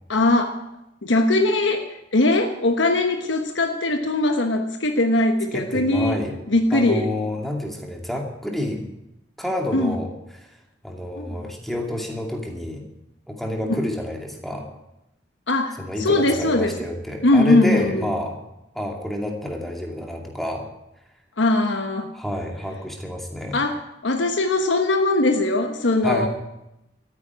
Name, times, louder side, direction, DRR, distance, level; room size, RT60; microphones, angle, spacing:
voice 1, 0.1-0.6 1.0-6.2 6.5-7.1 9.7-10.0 11.2-11.5 13.7-13.8 15.5-16.8 17.2-18.0 21.4-22.1 23.5-26.3, left 2 dB, 80° left, 5 dB, 1.2 m, -21 dB
voice 2, 5.5-6.3 6.7-8.9 9.4-10.1 10.4-10.6 10.8-12.8 13.3-14.7 15.8-18.4 18.7-20.7 22.1-23.6 26.0-26.3, left 1 dB, ahead, 1 dB, 2.5 m, -28 dB
13.5 x 9.4 x 9.7 m, 0.87 s
head